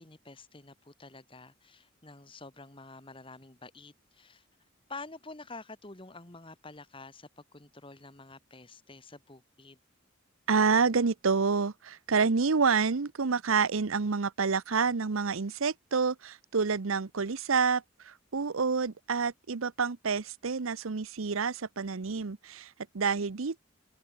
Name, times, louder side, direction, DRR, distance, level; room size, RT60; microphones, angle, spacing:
voice 1, 0.0-4.4 4.9-9.8, left 3 dB, 25° left, 1.6 m, -48 dB
voice 2, 10.5-23.6, right 5 dB, 80° right, 0.8 m, -28 dB
head